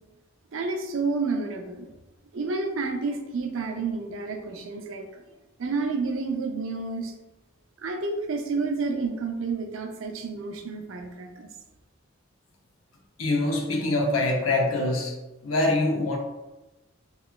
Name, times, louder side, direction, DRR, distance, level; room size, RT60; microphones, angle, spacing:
voice 1, 0.5-1.9 2.3-5.3 5.6-7.1 7.8-11.5, right 4 dB, 75° right, 4 dB, 0.5 m, -30 dB
voice 2, 13.2-15.1 15.4-16.2, left 2 dB, 90° left, 1 dB, 0.8 m, -24 dB
3.8 x 3.1 x 2.3 m, 1.0 s
head